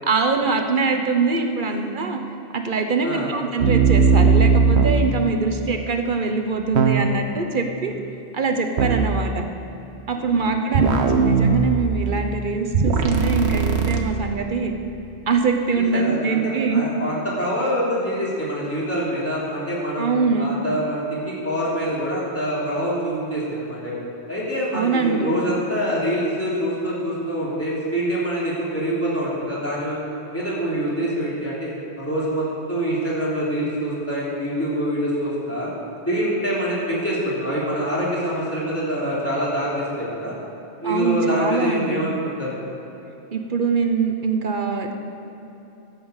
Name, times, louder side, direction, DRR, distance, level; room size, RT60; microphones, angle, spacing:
voice 1, 0.0-2.2 2.5-7.9 8.3-9.5 10.1-14.8 15.3-16.8 20.0-20.5 24.7-25.4 40.8-42.0 43.3-44.9, right 4 dB, 50° right, 5 dB, 1.1 m, -23 dB
sound 1, 3.6-5.1 6.8-7.3 8.8-9.1 10.7-12.3 12.7-14.0, right 5 dB, 85° right, 1.2 m, -18 dB
voice 2, 15.7-20.0 20.4-24.0 24.3-30.0 30.3-35.7 36.1-40.3 40.8-42.6, equal, 15° left, -7 dB, 3.3 m, -25 dB
12.0 x 7.2 x 8.0 m, 3.0 s
omnidirectional pair, 1.1 m